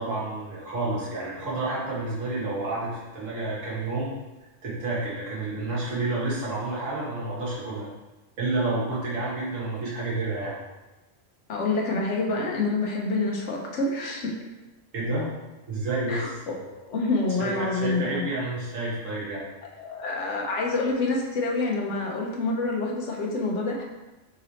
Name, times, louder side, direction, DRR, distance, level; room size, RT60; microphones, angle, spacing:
voice 1, 0.0-4.1 4.6-7.9 8.4-10.6 14.9-15.3 15.7-16.4 17.4-19.4, right 2 dB, 80° right, -7 dB, 1.7 m, -30 dB
voice 2, 11.5-14.3 16.1-16.6 16.9-18.3 19.8-23.8, left 3 dB, 65° left, -1 dB, 1.0 m, -27 dB
3.9 x 3.0 x 4.0 m, 1.1 s
omnidirectional pair, 1.3 m